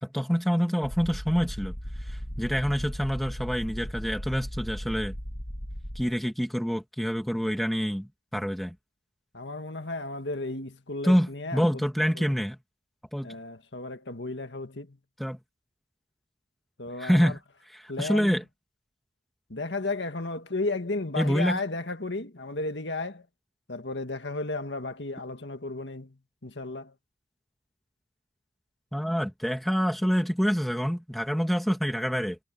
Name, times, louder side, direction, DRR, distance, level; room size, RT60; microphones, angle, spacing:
voice 1, 0.0-1.7 2.1-5.1 5.9-8.7 11.0-12.6 13.1-13.3 15.2-15.4 17.0-17.4 17.7-18.4 21.2-21.6 28.9-32.4, equal, ahead, 2.8 m, -26 dB
sound 1, 0.8-6.1, equal, 55° left, 7.6 m, -37 dB
voice 2, 9.3-11.6 12.2-12.3 13.2-15.0 16.8-17.4 17.9-18.4 19.5-23.2 23.7-26.1 26.4-26.9, left 2 dB, 85° left, 1.9 m, -34 dB
head